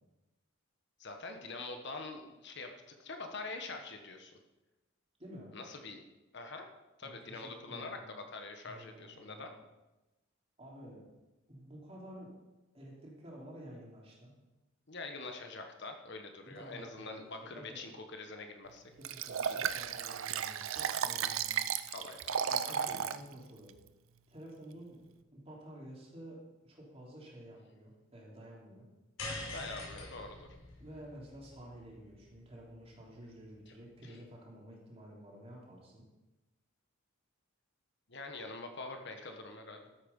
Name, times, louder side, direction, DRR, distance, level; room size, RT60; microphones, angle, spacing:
voice 1, 1.0-2.7 3.0-4.3 5.5-6.0 6.3-6.7 7.0-8.0 8.3-9.5 14.9-18.8 19.4-19.6 21.9-22.9 29.5-30.5 33.7-33.8 38.1-39.9, left 3 dB, 55° left, 5 dB, 1.2 m, -45 dB
voice 2, 5.2-5.5 7.0-8.0 8.6-9.5 10.6-11.0 11.5-12.3 12.7-14.3 16.4-17.8 19.0-21.6 22.4-23.7 24.3-25.0 25.3-28.9 30.8-36.0, right 1 dB, 30° right, -3 dB, 3.2 m, -51 dB
Liquid, 19.0-23.2 23.7-23.8, right 8 dB, 75° right, 0.6 m, -34 dB
sound 1, 29.2-33.6, left 2 dB, 75° left, 5.0 m, -46 dB
13.5 x 8.6 x 5.3 m, 1.1 s
head